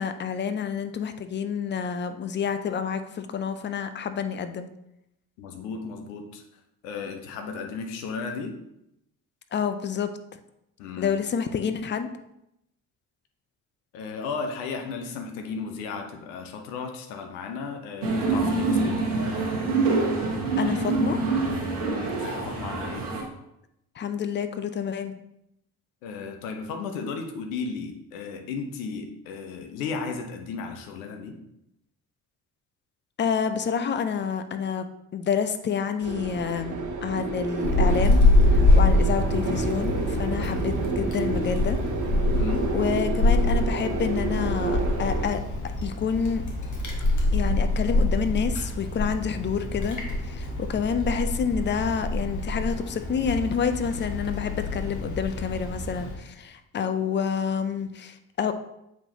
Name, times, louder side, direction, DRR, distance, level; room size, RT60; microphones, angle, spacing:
voice 1, 0.0-4.7 9.5-10.1 11.0-12.1 20.6-21.2 24.0-25.1 33.2-34.9 35.1-36.8 37.0-38.2 38.5-41.8 42.7-45.4 45.8-46.4 47.3-50.0 50.2-58.5, left 7 dB, 25° left, 9 dB, 0.6 m, -28 dB
voice 2, 5.4-6.4 6.8-8.5 10.8-11.1 13.9-19.0 21.8-23.1 26.0-31.4 42.3-42.7, left 5 dB, 65° left, 4 dB, 1.0 m, -34 dB
sound 1, 18.0-23.2, right 3 dB, 70° right, 1.3 m, -25 dB
sound 2, 36.0-45.3, right 3 dB, 40° right, 1.1 m, -30 dB
Wind, 37.6-56.1, left 2 dB, 40° left, 1.5 m, -25 dB
7.2 x 5.3 x 2.8 m, 0.82 s
figure-of-eight pair, 45°, 46 cm